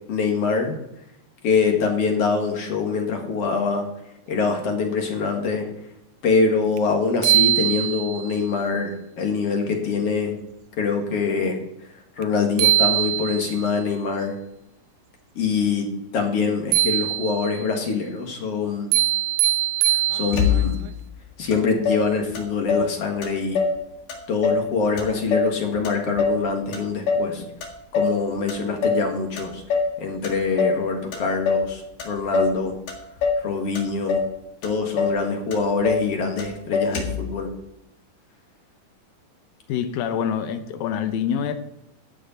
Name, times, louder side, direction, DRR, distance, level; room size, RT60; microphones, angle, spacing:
voice 1, 0.1-0.7 1.4-3.9 4.3-5.7 6.2-10.4 10.8-11.6 12.2-14.4 15.4-18.9 19.9-20.8 21.4-23.6 24.3-27.5 27.9-29.6 30.0-32.7 33.4-34.2 34.6-37.5, left 5 dB, 50° left, 3 dB, 2.5 m, -24 dB
sound 1, 6.8-6.9 7.2-8.3 12.2-12.3 12.6-13.7 16.7-17.6 18.9-20.7, right 14 dB, 80° right, 1.7 m, -21 dB
Motor vehicle (road), 20.3-21.0 21.5-21.6 21.9-22.9 23.2-23.8 24.1-24.7 25.0-26.4 26.7-27.3 27.6-28.2 28.5-29.1 29.4-30.0 30.2-30.8 31.1-31.7 32.0-32.6 32.9-33.5 33.8-34.3 34.6-34.7 35.0-35.2 35.5-36.1 36.4-36.5 36.7-37.3, left 5 dB, 75° left, 3.4 m, -23 dB
voice 2, 39.7-41.5, left 8 dB, 90° left, 9 dB, 2.6 m, -25 dB
12.5 x 9.0 x 4.3 m, 0.82 s
omnidirectional pair, 3.9 m